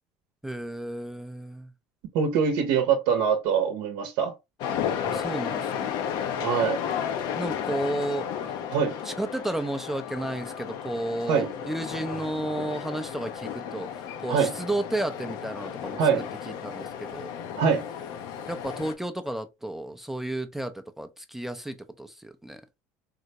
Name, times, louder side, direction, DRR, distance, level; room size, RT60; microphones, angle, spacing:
voice 1, 0.4-1.7 5.1-6.0 7.4-8.3 9.0-16.1 16.5-17.3 18.5-22.6, right 1 dB, 5° right, 0.4 m, -32 dB
voice 2, 2.1-4.3 6.4-6.8 8.7-9.0 11.3-11.5 14.3-14.5 16.0-16.2 17.6-17.8, right 6 dB, 70° right, 0.7 m, -23 dB
sound 1, 4.6-18.9, left 8 dB, 65° left, 0.6 m, -33 dB
3.7 x 2.1 x 2.8 m
supercardioid pair, 95°, 8 cm